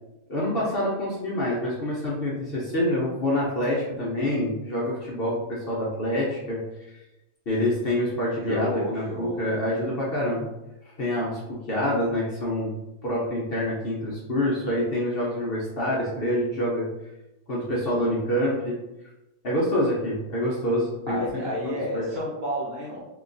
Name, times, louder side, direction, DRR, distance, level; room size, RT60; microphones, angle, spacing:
voice 1, 0.3-6.9 7.5-10.5 11.0-12.7 13.0-16.9 17.5-18.8 19.4-21.4 21.9-22.0, left 1 dB, 50° left, -5 dB, 0.9 m, -26 dB
voice 2, 8.4-9.4 21.1-23.0, left 1 dB, 50° right, -5 dB, 1.2 m, -30 dB
3.8 x 3.0 x 2.6 m, 0.96 s
omnidirectional pair, 1.5 m